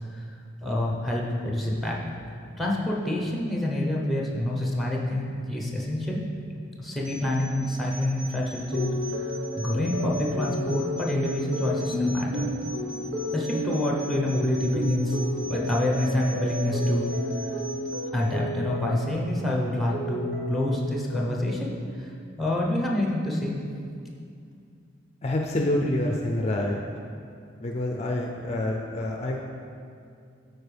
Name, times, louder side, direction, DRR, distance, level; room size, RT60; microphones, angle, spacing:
voice 1, 0.6-2.0 2.6-6.2 6.8-12.5 13.3-17.1 17.5-17.6 18.1-22.1 22.4-23.5, left 1 dB, ahead, -2 dB, 0.9 m, -27 dB
sound 1, 7.0-18.1, right 1 dB, 50° right, 1.7 m, -38 dB
sound 2, 8.7-19.2 19.5-20.8 21.1-21.7, equal, 85° right, 1.3 m, -33 dB
voice 2, 25.2-26.8 27.6-29.4, left 1 dB, 35° left, 0 dB, 0.5 m, -27 dB
12.5 x 4.5 x 3.4 m, 2.4 s
head